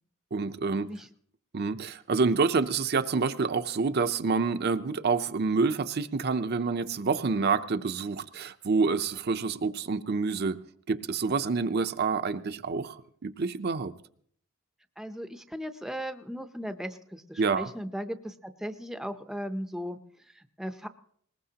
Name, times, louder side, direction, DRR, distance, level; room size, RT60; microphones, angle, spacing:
voice 1, 0.3-0.9 1.5-10.6 10.9-13.9 17.4-17.7, right 4 dB, 50° right, 9 dB, 0.6 m, -27 dB
voice 2, 15.0-20.9, equal, ahead, 9 dB, 0.6 m, -37 dB
21.0 x 19.5 x 2.9 m, 0.62 s
head